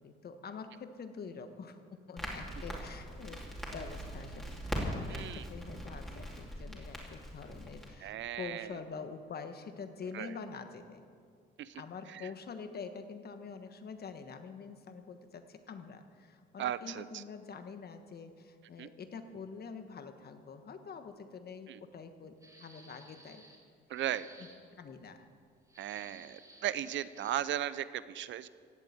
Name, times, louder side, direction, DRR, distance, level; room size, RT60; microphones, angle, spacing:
voice 1, 0.0-3.5 3.7-4.4 4.7-11.0 11.7-22.3 22.6-23.4 24.4-24.5 24.8-25.3, left 5 dB, 50° left, 8 dB, 1.4 m, -46 dB
Crackle, 2.2-7.9, equal, ahead, 3.7 m, -41 dB
voice 2, 5.1-5.4 8.0-8.7 10.1-10.3 11.6-11.8 12.1-12.3 16.6-17.2 18.8-18.9 21.7-21.8 23.9-24.3 25.8-28.5, right 11 dB, 70° right, 16 dB, 0.6 m, -37 dB
sound 1, 22.4-23.6 24.0-24.6 25.7-27.5, right 1 dB, 15° right, 3.7 m, -57 dB
16.5 x 7.8 x 8.6 m, 2.1 s
cardioid pair, 90°, 20 cm